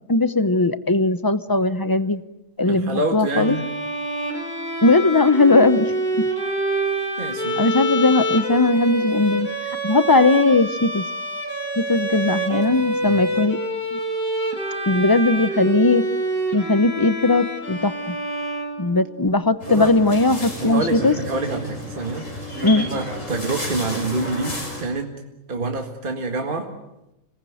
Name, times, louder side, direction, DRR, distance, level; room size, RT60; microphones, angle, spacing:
voice 1, 0.1-2.2 2.6-3.6 4.8-5.9 7.6-9.5 9.8-11.0 11.8-13.6 13.9-14.0 14.9-16.1 16.5-18.2 18.8-21.2 22.6-22.9, left 2 dB, 20° left, 13 dB, 0.7 m, -18 dB
voice 2, 2.6-3.6 7.2-7.6 12.5-12.6 13.0-13.2 19.7-19.9 20.6-22.3 22.8-25.1 25.5-26.7, right 2 dB, 40° right, 3 dB, 2.0 m, -27 dB
Bowed string instrument, 3.3-19.4, right 1 dB, 40° left, 5.1 m, -26 dB
sound 1, 19.6-24.8, left 1 dB, 65° left, 6.4 m, -32 dB
27.0 x 19.5 x 9.3 m, 0.90 s
omnidirectional pair, 1.4 m